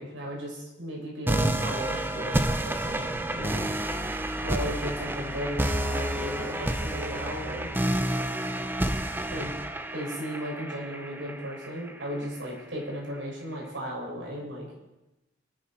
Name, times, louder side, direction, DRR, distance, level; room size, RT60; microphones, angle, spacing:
voice 1, 0.0-3.7 4.4-7.7 9.3-9.5 9.9-14.7, equal, 80° right, -2 dB, 6.6 m, -35 dB
sound 1, 1.3-12.2, right 1 dB, 10° right, 0.7 m, -30 dB
24.5 x 10.0 x 4.5 m, 0.99 s
head